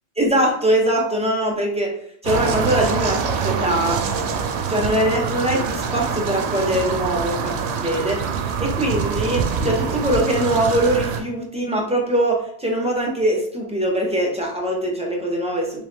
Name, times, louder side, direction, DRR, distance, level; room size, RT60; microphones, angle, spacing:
voice 1, 0.2-2.0 2.2-4.0 4.7-8.3 8.6-15.8, right 1 dB, 5° right, -2 dB, 0.6 m, -22 dB
sound 1, 2.2-11.2, right 6 dB, 70° right, 0.8 m, -25 dB
3.4 x 3.1 x 3.3 m, 0.64 s
omnidirectional pair, 1.2 m